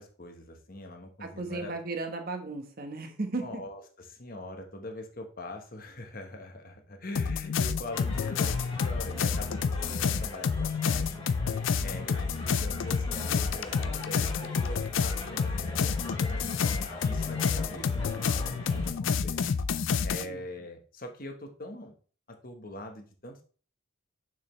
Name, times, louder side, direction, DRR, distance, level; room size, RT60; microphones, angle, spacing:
voice 1, 0.0-1.7 3.4-3.8 4.1-11.2 11.8-18.3 18.6-19.4 20.0-21.9 22.3-23.4, left 1 dB, 40° left, 4 dB, 1.2 m, -43 dB
voice 2, 1.2-3.7 20.2-20.4, right 3 dB, 45° right, 4 dB, 1.1 m, -35 dB
sound 1, 7.2-20.2, left 5 dB, 60° left, 0.4 m, -29 dB
sound 2, 7.9-18.9, left 2 dB, 25° left, 2.3 m, -42 dB
6.6 x 6.2 x 3.1 m, 0.39 s
head